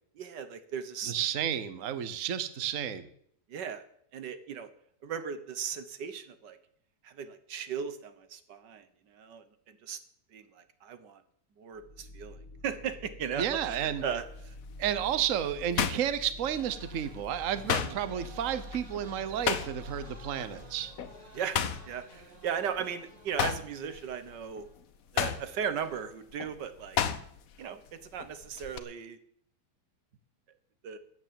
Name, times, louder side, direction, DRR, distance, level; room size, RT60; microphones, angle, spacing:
voice 1, 0.2-1.1 3.5-3.8 4.1-4.7 5.0-6.6 7.0-10.0 10.3-11.2 11.6-12.4 12.6-14.5 17.8-18.0 21.3-24.7 25.1-27.0 27.6-29.2 30.8-31.0, right 7 dB, 85° right, 10 dB, 1.8 m, -37 dB
voice 2, 1.1-3.1 13.4-14.0 14.8-20.9, right 10 dB, 55° right, 13 dB, 1.2 m, -31 dB
sound 1, 11.7-21.4, left 2 dB, 25° left, 1.8 m, -48 dB
sound 2, 13.5-13.8 14.4-16.9 17.2-20.1 20.4-20.6 21.0-22.9 23.2-27.6 27.9-28.8, left 8 dB, 60° left, 1.2 m, -33 dB
sound 3, 16.6-24.8, right 2 dB, 25° right, 2.1 m, -52 dB
14.0 x 9.4 x 7.6 m, 0.68 s
omnidirectional pair, 1.8 m